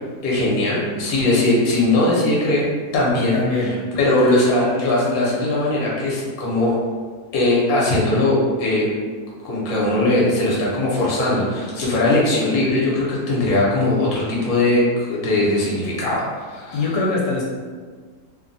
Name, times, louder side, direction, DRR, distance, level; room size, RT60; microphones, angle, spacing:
voice 1, 0.2-2.7 2.9-3.4 3.9-6.7 7.3-8.9 9.4-16.8, left 2 dB, 65° left, -5 dB, 1.2 m, -19 dB
voice 2, 3.3-3.8 16.7-17.4, left 3 dB, 85° left, -4 dB, 1.2 m, -22 dB
3.0 x 2.2 x 2.5 m, 1.6 s
omnidirectional pair, 1.8 m